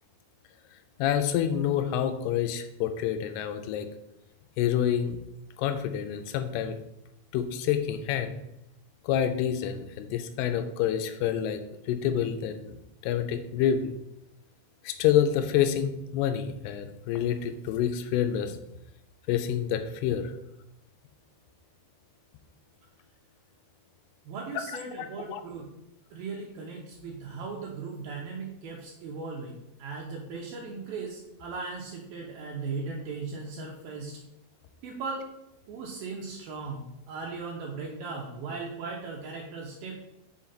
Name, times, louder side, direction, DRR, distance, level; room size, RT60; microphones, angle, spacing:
voice 1, 1.0-3.9 4.6-5.2 5.6-6.8 7.3-8.3 9.0-11.6 11.9-12.7 13.0-13.9 14.8-18.6 19.3-20.3 25.0-25.4, left 9 dB, 85° left, 8 dB, 2.6 m, -27 dB
voice 2, 24.2-25.7 26.1-34.2 34.8-35.2 35.7-40.0, right 4 dB, 75° right, -1 dB, 2.3 m, -38 dB
6.4 x 4.4 x 4.0 m, 0.85 s
omnidirectional pair, 4.6 m